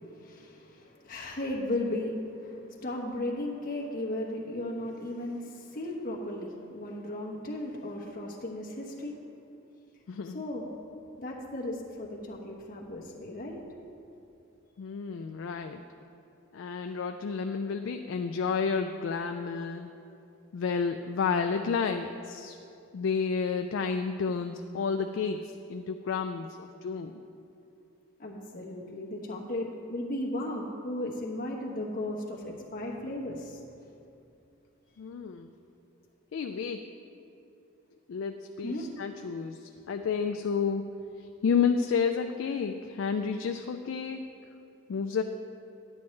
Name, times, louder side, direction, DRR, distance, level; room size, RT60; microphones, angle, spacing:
voice 1, 0.0-9.2 10.2-10.7 11.2-13.6 17.5-17.6 19.5-19.6 28.2-33.6 38.6-38.8, left 1 dB, 40° left, -2 dB, 1.2 m, -36 dB
voice 2, 10.1-10.4 14.8-15.8 16.5-19.9 20.5-22.5 22.9-25.4 25.7-27.2 35.0-35.5 36.3-36.8 38.1-40.8 41.4-44.3 44.9-45.2, left 5 dB, 70° left, 6 dB, 0.3 m, -30 dB
10.5 x 8.7 x 3.2 m, 2.7 s
head